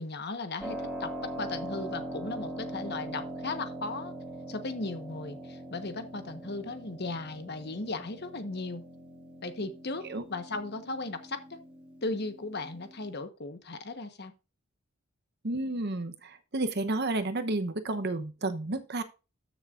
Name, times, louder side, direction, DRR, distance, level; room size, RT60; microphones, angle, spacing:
voice 1, 0.0-4.1 4.5-8.8 9.4-11.6 12.0-14.3, left 3 dB, 50° left, 9 dB, 1.2 m, -36 dB
Keyboard (musical), 0.6-13.1, right 1 dB, 5° right, 2.8 m, -42 dB
voice 2, 15.4-19.0, right 2 dB, 50° right, 10 dB, 0.9 m, -31 dB
13.5 x 6.8 x 2.5 m, 0.30 s
head